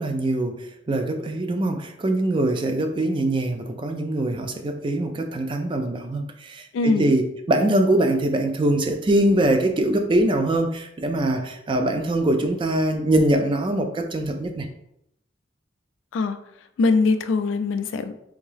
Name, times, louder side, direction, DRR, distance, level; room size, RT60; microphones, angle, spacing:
voice 1, 0.0-14.7, right 1 dB, 25° right, 6 dB, 0.3 m, -23 dB
voice 2, 6.7-7.1 16.1-16.4 16.8-18.1, left 3 dB, 80° left, 10 dB, 0.3 m, -22 dB
3.5 x 2.7 x 3.3 m, 0.79 s
head